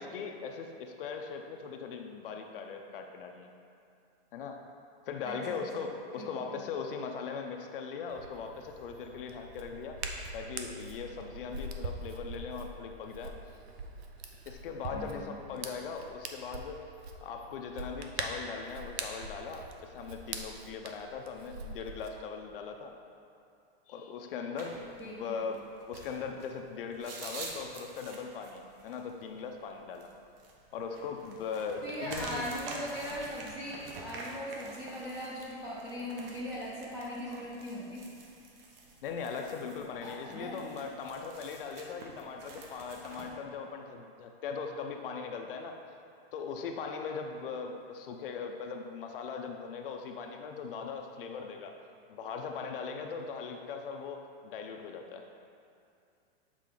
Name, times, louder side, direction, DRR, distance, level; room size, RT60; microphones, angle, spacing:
voice 1, 0.0-3.5 4.3-4.7 5.1-10.0 10.3-13.4 14.5-16.8 17.2-22.9 23.9-30.1 30.7-32.5 39.0-45.8 46.3-51.8 52.1-55.3, left 5 dB, 60° left, 4 dB, 0.5 m, -40 dB
voice 2, 5.2-5.9 6.2-6.5 14.9-15.2 25.0-25.4 31.8-38.1 40.0-40.7, equal, 10° right, -7 dB, 0.5 m, -40 dB
Hands, 8.1-22.1, right 3 dB, 85° right, 0.7 m, -43 dB
sound 1, 24.6-43.3, right 2 dB, 65° right, 1.1 m, -47 dB
7.4 x 4.1 x 3.8 m, 2.5 s
supercardioid pair, 170°, 31 cm